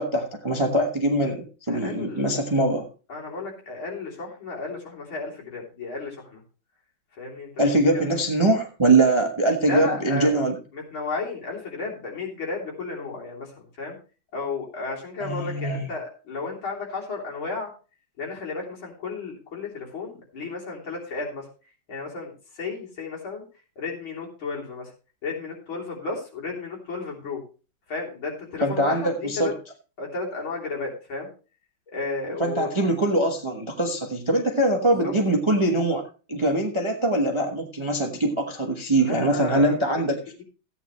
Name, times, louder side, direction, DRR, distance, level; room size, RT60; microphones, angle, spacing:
voice 1, 0.0-2.8 7.6-10.5 15.2-15.8 28.6-29.5 32.4-40.2, right 2 dB, 20° right, 3 dB, 0.7 m, -23 dB
voice 2, 1.7-2.4 3.1-6.4 7.2-7.5 7.9-8.2 9.7-10.4 10.7-13.9 14.3-17.7 18.2-21.5 21.9-23.4 23.8-24.9 25.2-27.4 27.9-29.5 30.0-31.3 31.9-32.7 35.0-35.1 39.0-39.8, left 3 dB, 70° left, -2 dB, 4.0 m, -33 dB
14.5 x 9.1 x 3.1 m, 0.35 s
omnidirectional pair, 2.3 m